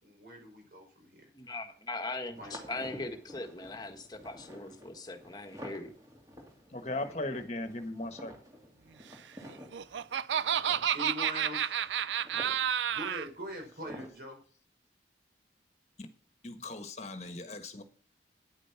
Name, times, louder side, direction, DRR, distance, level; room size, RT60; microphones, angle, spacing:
voice 1, 0.0-1.3 2.3-2.5 9.8-10.0 10.6-11.8 12.9-14.4, equal, 55° right, 5.1 m, -43 dB
voice 2, 1.3-5.9, left 2 dB, 20° left, 1.5 m, -40 dB
sound 1, 2.3-14.1, equal, 20° right, 2.6 m, -51 dB
voice 3, 6.7-8.3 16.0-16.1 16.4-17.8, left 2 dB, 40° left, 1.4 m, -38 dB
Laughter, 9.5-13.3, right 9 dB, 90° right, 0.5 m, -30 dB
9.9 x 9.3 x 5.9 m
head